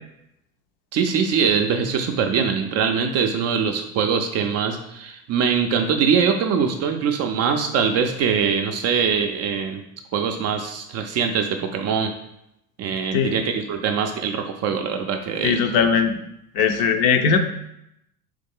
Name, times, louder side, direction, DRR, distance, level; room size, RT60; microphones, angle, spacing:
voice 1, 0.9-9.8 10.1-12.1 12.8-15.6, right 6 dB, 35° right, 5 dB, 0.4 m, -22 dB
voice 2, 15.4-16.2 16.5-17.4, left 6 dB, 50° left, 8 dB, 0.5 m, -19 dB
3.7 x 3.2 x 3.5 m, 0.81 s
hypercardioid pair, 80°, 47 cm